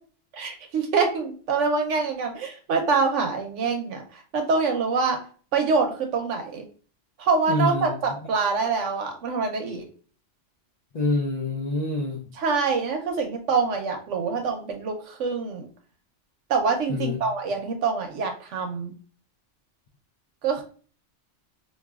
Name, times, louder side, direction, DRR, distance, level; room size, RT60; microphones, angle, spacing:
voice 1, 0.3-5.2 5.5-6.6 7.2-9.8 12.3-15.7 16.5-18.9 20.4-20.6, right 4 dB, 80° right, 3 dB, 1.0 m, -25 dB
voice 2, 7.5-7.9 10.9-12.2 16.9-17.2, left 2 dB, 65° left, 1 dB, 0.4 m, -26 dB
4.7 x 2.6 x 2.3 m, 0.42 s
omnidirectional pair, 1.3 m